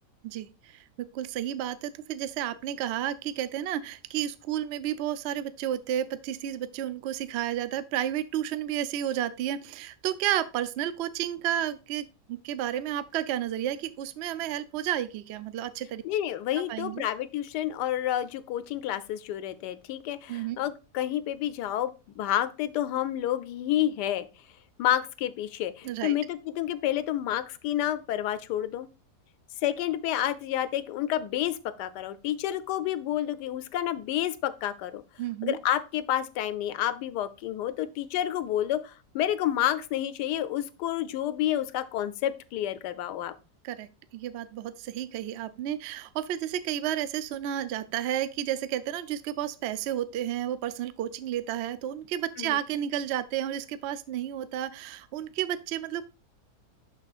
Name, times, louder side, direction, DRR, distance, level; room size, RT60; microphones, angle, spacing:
voice 1, 0.2-16.0 16.5-17.1 20.3-20.6 25.8-26.1 35.2-35.6 43.6-56.0, right 11 dB, 80° right, 0.6 m, -32 dB
voice 2, 16.0-24.3 24.8-28.9 29.6-35.0 35.4-43.3 52.4-52.6, left 12 dB, 90° left, 1.2 m, -29 dB
11.5 x 4.0 x 2.4 m
omnidirectional pair, 1.7 m